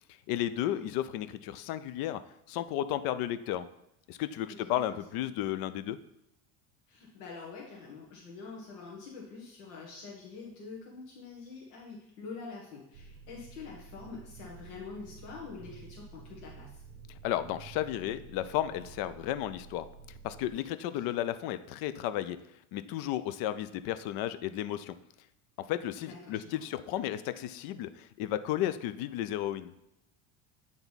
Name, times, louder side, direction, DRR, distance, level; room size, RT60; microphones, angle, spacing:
voice 1, 0.3-2.2 2.5-3.7 4.1-6.0 17.2-19.9 20.2-22.4 22.7-24.9 25.7-29.7, left 12 dB, 55° left, 13 dB, 0.5 m, -33 dB
voice 2, 4.5-5.0 6.9-16.8 20.8-21.1 26.1-26.7, left 4 dB, 85° left, -3 dB, 1.5 m, -46 dB
sound 1, 12.9-20.5, right 5 dB, 50° right, 0.8 m, -51 dB
8.8 x 3.5 x 4.0 m, 0.81 s
supercardioid pair, 130°, 44 cm